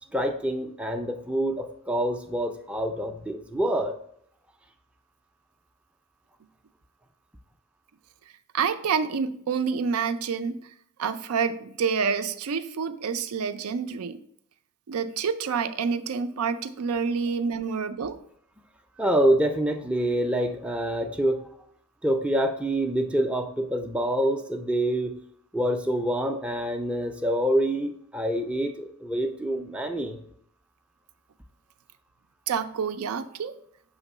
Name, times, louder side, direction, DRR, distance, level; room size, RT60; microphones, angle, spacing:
voice 1, 0.1-4.0 19.0-21.5 22.0-25.1 25.5-30.2, right 1 dB, 5° right, 4 dB, 0.4 m, -26 dB
voice 2, 8.5-10.7 11.0-14.2 14.9-18.2 32.5-33.5, right 6 dB, 85° right, 11 dB, 0.4 m, -28 dB
7.0 x 3.0 x 5.4 m, 0.68 s
head